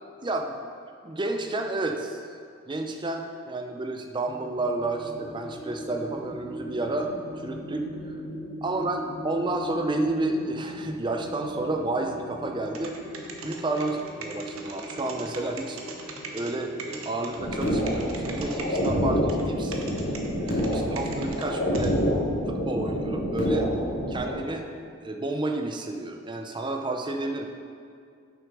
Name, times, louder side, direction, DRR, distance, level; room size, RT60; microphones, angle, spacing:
voice 1, 0.2-0.5 1.0-2.2 2.7-7.9 8.6-12.9 13.4-15.8 16.3-19.7 20.4-22.0 22.5-23.7 24.1-24.7 25.0-27.5, right 2 dB, 20° right, 4 dB, 0.5 m, -30 dB
sound 1, 4.2-23.5, equal, 45° left, 1.4 m, -41 dB
sound 2, 12.6-16.5 16.8-18.9 19.3-19.4 19.7-21.5 21.7-21.9, right 5 dB, 85° right, 0.9 m, -40 dB
sound 3, 17.4-24.4, equal, 90° left, 2.0 m, -27 dB
7.1 x 6.0 x 5.3 m, 2.2 s
head